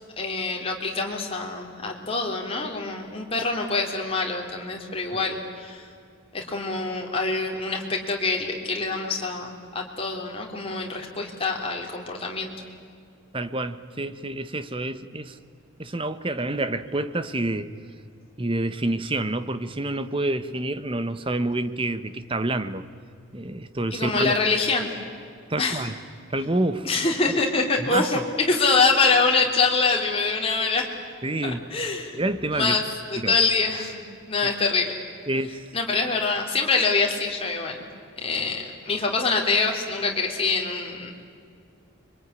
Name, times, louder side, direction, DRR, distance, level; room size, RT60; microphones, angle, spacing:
voice 1, 0.2-5.9 6.3-12.5 23.9-24.9 25.6-25.8 26.8-28.2 28.5-30.9 31.4-32.2 32.5-32.8 33.1-34.0 34.3-34.9 35.7-37.8 38.2-41.1, left 4 dB, 25° left, 1 dB, 3.4 m, -25 dB
voice 2, 13.3-15.4 15.8-17.7 18.4-22.8 23.3-24.3 25.5-26.0 26.3-26.9 27.3-27.4 27.8-28.2 31.2-31.6 32.1-32.8 33.2-33.4 35.3-35.7, right 2 dB, 25° right, 12 dB, 1.0 m, -28 dB
26.0 x 23.5 x 9.7 m, 2.3 s
head